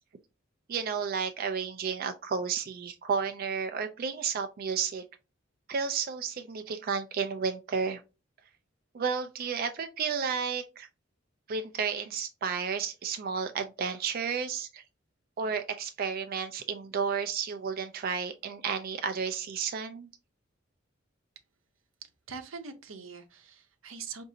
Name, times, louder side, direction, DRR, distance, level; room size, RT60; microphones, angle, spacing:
voice 1, 0.7-5.0 5.7-8.0 8.9-10.9 11.5-14.8 15.4-20.1, right 6 dB, 50° right, 7 dB, 0.4 m, -32 dB
voice 2, 22.3-24.2, right 5 dB, 85° right, 8 dB, 0.7 m, -43 dB
4.9 x 2.6 x 2.7 m, 0.29 s
head